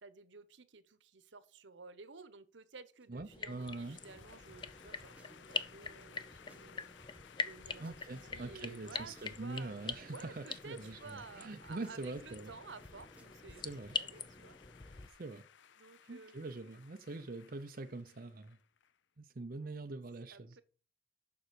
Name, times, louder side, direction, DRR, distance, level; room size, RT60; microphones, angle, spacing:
voice 1, 0.0-6.9 7.4-14.6 14.8-15.1 15.8-16.7 20.3-20.6, right 4 dB, 85° right, 1.0 m, -53 dB
sound 1, 3.0-9.7 10.2-14.2, equal, 5° right, 1.2 m, -62 dB
voice 2, 3.1-4.0 7.8-11.0 11.3-12.5 13.6-14.0 15.2-15.4 16.1-18.6 19.2-20.6, right 2 dB, 50° right, 0.6 m, -44 dB
sound 2, 3.3-15.1, left 5 dB, 25° left, 0.5 m, -44 dB
sound 3, 3.5-19.0, left 8 dB, 80° left, 0.5 m, -60 dB
7.1 x 6.2 x 6.5 m
head